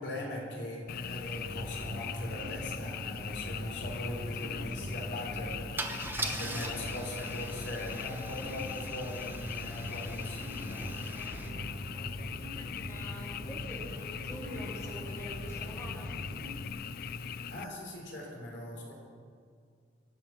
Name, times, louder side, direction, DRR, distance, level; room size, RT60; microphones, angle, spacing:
voice 1, 0.0-10.9 17.3-18.9, left 1 dB, 80° left, -1 dB, 3.8 m, -40 dB
Frog, 0.9-17.6, left 7 dB, 55° left, 0.4 m, -40 dB
sound 1, 1.3-16.7, equal, 55° right, 2.8 m, -43 dB
Car / Engine starting / Idling, 3.2-3.3 3.5-3.8 5.8-11.5, right 3 dB, 10° right, 0.9 m, -42 dB
voice 2, 12.6-16.1, equal, 15° left, -4 dB, 3.2 m, -46 dB
24.0 x 8.6 x 5.8 m, 2.1 s
head